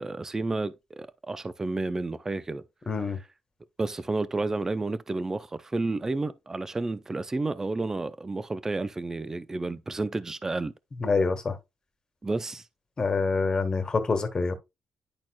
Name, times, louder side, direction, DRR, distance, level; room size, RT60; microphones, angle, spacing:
voice 1, 0.0-2.6 3.8-10.7 12.2-12.6, right 3 dB, 25° right, 0.5 m, -31 dB
voice 2, 2.9-3.2 11.0-11.6 13.0-14.5, left 4 dB, 35° left, 1.5 m, -26 dB
10.5 x 4.2 x 2.3 m
cardioid pair, 70°, 2 cm